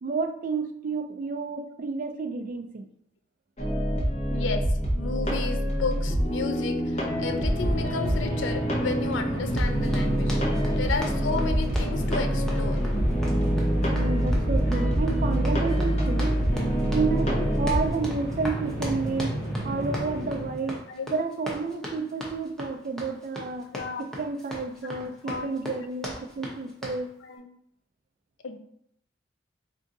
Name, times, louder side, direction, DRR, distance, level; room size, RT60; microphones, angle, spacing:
voice 1, 0.0-2.9 13.9-16.4 16.9-19.4 19.6-20.9 21.1-23.7 24.0-27.1, right 4 dB, 45° right, 7 dB, 0.3 m, -30 dB
sound 1, 3.6-17.9, equal, 35° left, 0.8 m, -26 dB
voice 2, 4.3-4.7 4.9-10.4 10.7-12.9 20.9-21.1 23.7-24.0 25.0-25.5 27.2-27.5 28.4-28.6, left 4 dB, 80° left, 6 dB, 0.5 m, -33 dB
sound 2, 6.9-20.7, right 1 dB, 20° left, 1.5 m, -33 dB
Run, 9.5-27.0, equal, 5° left, 0.7 m, -39 dB
3.5 x 2.6 x 3.9 m, 0.73 s
head